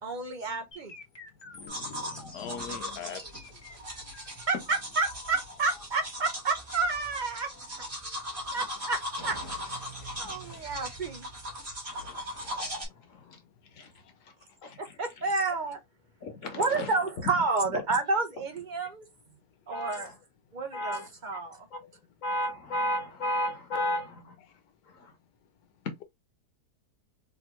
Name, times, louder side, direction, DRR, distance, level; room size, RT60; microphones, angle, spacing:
voice 1, 0.0-0.9 4.5-7.8 8.5-9.4 10.2-11.3 14.8-15.8 16.6-19.1 19.7-20.1 20.5-21.7, right 3 dB, 60° right, 0.4 m, -30 dB
sound 1, 0.7-8.7 9.2-11.7, left 2 dB, 20° left, 0.7 m, -51 dB
voice 2, 1.5-3.1 10.1-10.6 11.9-12.7 13.0-13.4 13.7-13.9 14.6-14.9 16.2-16.9 17.2-17.3 17.7-17.8 19.7-20.1 20.7-21.1 21.7-21.8 22.2-24.4 24.9-25.1, left 1 dB, 55° left, 1.3 m, -35 dB
sound 2, 1.7-12.9, equal, 30° right, 2.1 m, -39 dB
voice 3, 2.3-3.4, left 7 dB, 90° left, 1.4 m, -40 dB
3.8 x 3.0 x 3.0 m
omnidirectional pair, 1.7 m